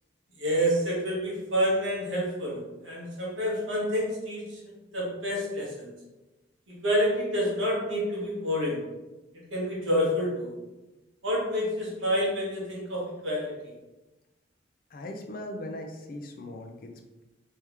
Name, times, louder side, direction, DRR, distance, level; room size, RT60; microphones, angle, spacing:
voice 1, 0.4-4.6 4.9-5.9 6.7-8.8 9.5-10.5 11.2-13.7, equal, 90° right, -4 dB, 1.3 m, -28 dB
voice 2, 14.9-17.2, left 1 dB, 50° left, 3 dB, 0.5 m, -39 dB
3.5 x 3.3 x 3.0 m, 1.1 s
head